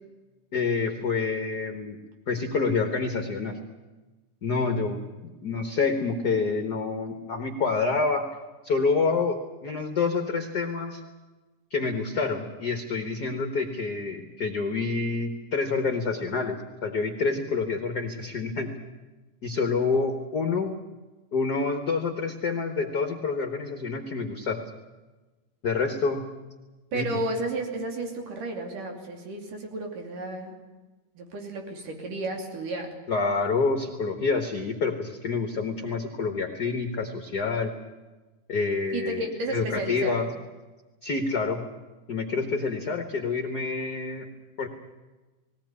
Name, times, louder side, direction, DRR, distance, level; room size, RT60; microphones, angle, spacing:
voice 1, 0.5-2.0 2.3-3.6 4.4-5.0 5.4-8.2 8.6-11.0 11.7-18.7 19.4-20.7 21.3-24.6 25.6-26.2 26.9-27.2 33.1-37.7 38.5-40.3 41.0-41.6 42.1-44.3 44.6-44.7, left 4 dB, 55° left, 5 dB, 1.1 m, -27 dB
voice 2, 26.9-30.6 31.2-32.9 38.9-40.2, right 2 dB, 80° right, 2 dB, 4.4 m, -32 dB
19.5 x 18.0 x 9.7 m, 1.2 s
omnidirectional pair, 3.7 m